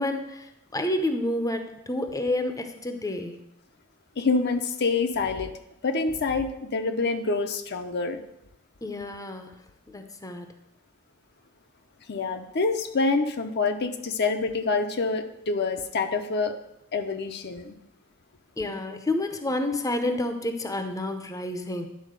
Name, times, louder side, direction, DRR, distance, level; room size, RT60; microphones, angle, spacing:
voice 1, 0.0-3.4 8.8-9.5 9.9-10.5 18.6-21.9, left 1 dB, 15° left, 7 dB, 0.6 m, -29 dB
voice 2, 4.2-5.5 5.8-8.2 12.1-16.6 16.9-17.8, left 4 dB, 55° left, 6 dB, 0.7 m, -26 dB
10.5 x 4.1 x 6.6 m, 0.83 s
head